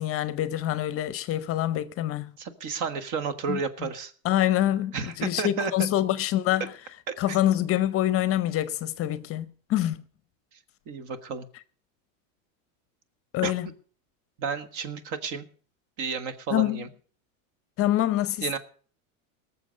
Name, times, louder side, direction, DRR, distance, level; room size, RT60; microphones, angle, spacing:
voice 1, 0.0-2.3 3.5-3.9 4.2-6.7 7.2-10.0 13.3-13.7 16.5-16.8 17.8-18.6, left 13 dB, 35° left, 0.6 m, -26 dB
voice 2, 2.4-4.1 4.9-5.7 7.1-7.4 10.9-11.5 13.4-13.5 14.4-15.4 16.0-16.9 18.4-18.6, right 5 dB, 50° right, 1.4 m, -31 dB
18.5 x 7.0 x 6.4 m
supercardioid pair, 130°, 39 cm